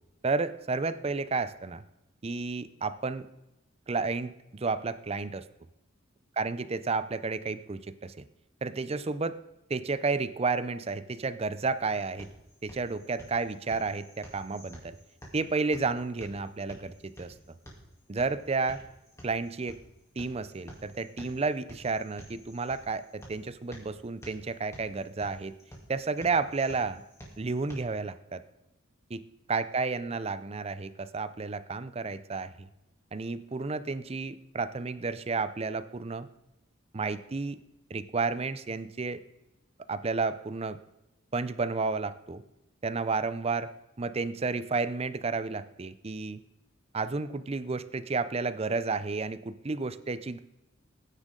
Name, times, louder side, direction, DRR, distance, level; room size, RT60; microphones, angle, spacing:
voice 1, 0.2-1.8 2.2-3.3 3.9-5.5 6.4-8.2 8.6-9.4 9.7-12.3 12.6-15.0 15.3-17.3 18.1-18.8 19.2-19.8 20.2-25.5 25.9-27.0 27.4-28.4 29.1-29.2 29.5-32.7 33.1-36.3 36.9-37.6 37.9-39.2 39.9-40.8 41.3-42.4 42.8-43.7 44.0-46.4 46.9-50.4, right 4 dB, 30° right, 14 dB, 0.5 m, -31 dB
sound 1, 11.7-27.7, equal, 15° left, 3.0 m, -51 dB
20.0 x 10.0 x 3.9 m, 0.92 s
head